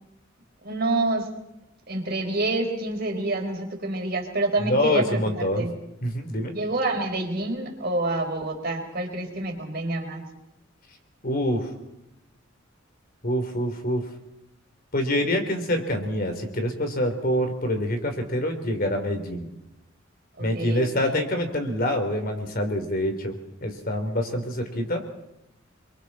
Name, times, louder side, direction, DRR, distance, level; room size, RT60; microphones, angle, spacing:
voice 1, 0.6-1.3 1.9-5.7 6.5-10.2 20.4-21.1, right 2 dB, 50° right, 3 dB, 4.2 m, -27 dB
voice 2, 4.6-5.7 6.0-6.5 11.2-11.7 13.2-14.0 14.9-19.5 20.4-25.0, left 1 dB, 45° left, 5 dB, 3.5 m, -26 dB
30.0 x 23.0 x 4.2 m, 0.87 s
head